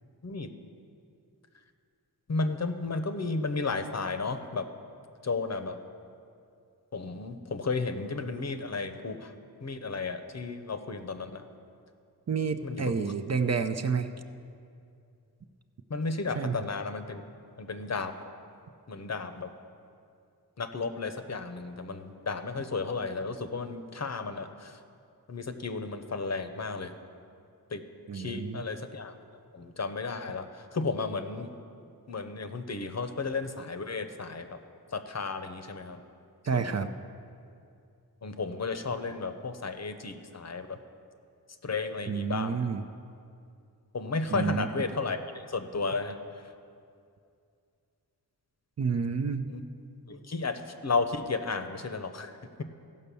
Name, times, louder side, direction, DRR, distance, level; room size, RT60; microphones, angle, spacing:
voice 1, 2.3-4.6 5.2-5.8 6.9-9.3 9.6-11.4 12.6-13.1 15.9-17.2 17.6-18.1 18.9-19.5 20.6-24.8 25.3-26.9 27.7-27.8 28.1-29.1 29.5-31.5 32.1-34.6 34.9-36.0 36.5-36.8 38.2-40.8 41.6-42.6 43.9-46.4 49.5-49.6 50.1-52.6, left 4 dB, 45° left, 8 dB, 0.7 m, -33 dB
voice 2, 12.3-14.1 16.3-16.5 28.1-28.6 36.5-36.9 42.1-42.8 44.3-44.7 48.8-49.5, right 5 dB, 45° right, 9 dB, 0.5 m, -29 dB
16.0 x 5.4 x 6.9 m, 2.4 s
wide cardioid pair, 90°, 38 cm